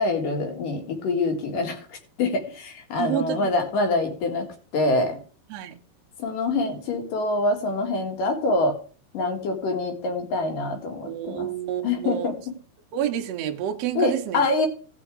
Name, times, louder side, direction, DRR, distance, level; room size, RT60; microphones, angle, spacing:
voice 1, 0.0-4.5 4.7-5.2 6.2-8.8 9.1-11.5 11.8-12.4 14.0-14.7, left 2 dB, 60° left, 3.2 m, -25 dB
voice 2, 2.9-3.5 3.8-3.9 5.5-5.7 11.0-12.3 12.9-14.4, right 11 dB, 75° right, 1.5 m, -29 dB
17.5 x 6.1 x 3.8 m
omnidirectional pair, 4.7 m